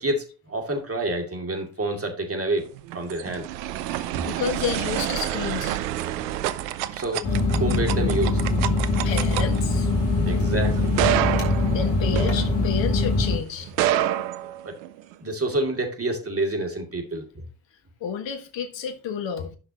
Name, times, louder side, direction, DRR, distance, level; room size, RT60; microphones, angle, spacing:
voice 1, 0.0-3.5 6.9-8.7 10.2-11.3 14.6-14.7 15.2-17.2, right 2 dB, 25° right, 2.4 m, -28 dB
sound 1, 2.7-13.0 13.6-15.1, right 13 dB, 85° right, 0.6 m, -28 dB
voice 2, 3.9-5.8 9.0-9.9 10.3-10.4 11.7-13.7 18.0-19.6, left 7 dB, 60° left, 1.5 m, -31 dB
sound 2, 7.2-13.4, left 2 dB, 80° left, 2.1 m, -23 dB
11.5 x 5.8 x 2.9 m
hypercardioid pair, 45°, 49 cm